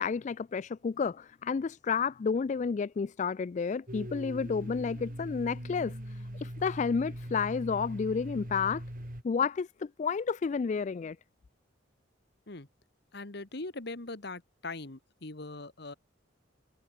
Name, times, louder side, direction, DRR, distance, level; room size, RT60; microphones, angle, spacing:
voice 1, 0.0-8.8 9.2-11.2, left 5 dB, 40° left, 0.3 m, -31 dB
Domestic sounds home sounds, 3.9-9.2, equal, 45° right, 5.0 m, -41 dB
voice 2, 13.1-15.9, left 2 dB, 60° left, 1.7 m, -41 dB
head